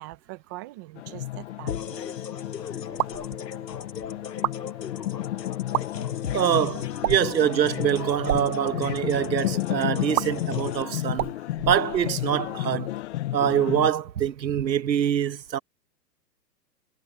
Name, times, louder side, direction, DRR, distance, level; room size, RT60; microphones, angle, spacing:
voice 1, 0.0-2.0, right 20 dB, 15° right, 0.4 m, -42 dB
sound 1, 1.0-13.9, left 15 dB, 45° left, 0.6 m, -32 dB
sound 2, 1.7-10.8, left 8 dB, 80° left, 5.5 m, -37 dB
sound 3, 3.0-3.3 4.3-4.6 5.6-5.8 7.0-7.4 8.1-8.5 10.1-10.3 11.1-12.3, right 14 dB, 70° right, 0.6 m, -29 dB
voice 2, 6.3-11.3 11.7-13.0 13.3-15.6, right 9 dB, 90° right, 1.2 m, -24 dB
hypercardioid pair, 135°, 50 cm